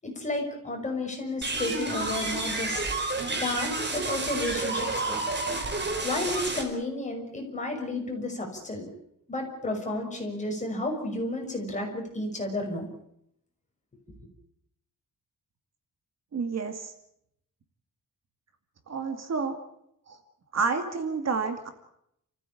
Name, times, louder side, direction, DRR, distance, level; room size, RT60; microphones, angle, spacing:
voice 1, 0.0-2.9 3.4-5.2 6.0-8.9 9.3-12.9, left 2 dB, 20° left, 1 dB, 6.0 m, -32 dB
sound 1, 1.4-6.6, right 2 dB, 35° right, 4.8 m, -30 dB
voice 2, 16.3-16.9 18.9-19.6 20.1-20.2 20.5-21.7, right 5 dB, 50° right, 7 dB, 2.5 m, -29 dB
29.0 x 15.5 x 8.6 m, 0.75 s
wide cardioid pair, 180°, 33 cm